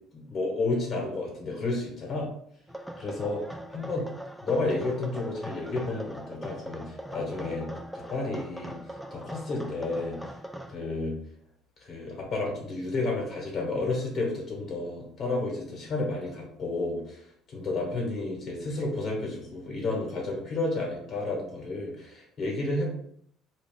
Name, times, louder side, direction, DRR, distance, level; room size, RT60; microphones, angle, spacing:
voice 1, 0.1-2.3 3.0-3.4 3.7-4.1 4.4-7.7 7.9-8.8 9.1-10.2 10.7-11.2 11.8-22.9, left 2 dB, 55° left, -2 dB, 1.2 m, -31 dB
sound 1, 2.7-10.8, equal, ahead, 0.4 m, -41 dB
2.5 x 2.3 x 3.8 m, 0.67 s
supercardioid pair, 75°, 0 cm